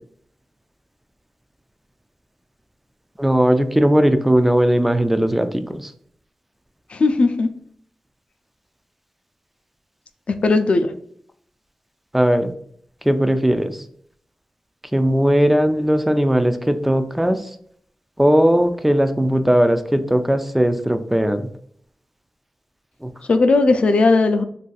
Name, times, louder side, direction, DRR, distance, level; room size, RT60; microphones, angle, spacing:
voice 1, 3.2-5.9 12.1-12.5 13.1-13.8 14.9-17.4 18.2-21.4 23.0-23.1, equal, 5° right, 9 dB, 0.3 m, -18 dB
voice 2, 6.9-7.5 10.4-10.9 23.3-24.4, left 3 dB, 65° left, 8 dB, 0.4 m, -16 dB
3.8 x 2.5 x 2.3 m, 0.65 s
cardioid pair, 65°, 2 cm